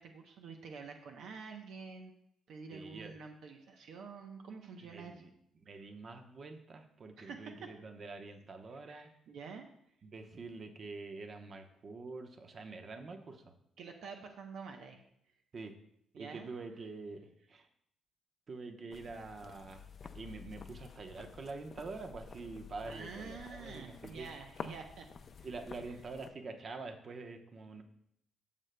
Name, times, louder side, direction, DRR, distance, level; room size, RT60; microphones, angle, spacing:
voice 1, 0.0-2.1 2.5-5.1 7.2-7.7 8.7-9.7 13.8-15.0 16.1-16.5 22.8-25.1 25.4-25.5, right 5 dB, 75° right, 4 dB, 0.8 m, -48 dB
voice 2, 2.7-3.2 4.8-5.3 5.6-9.1 10.0-13.5 15.5-15.7 16.2-17.7 18.5-19.9 20.1-24.3 25.4-27.8, right 3 dB, 45° right, 5 dB, 0.9 m, -46 dB
sound 1, 18.9-26.3, left 6 dB, 50° left, 0.5 m, -50 dB
12.5 x 6.7 x 2.2 m, 0.72 s
cardioid pair, 90°, 0 cm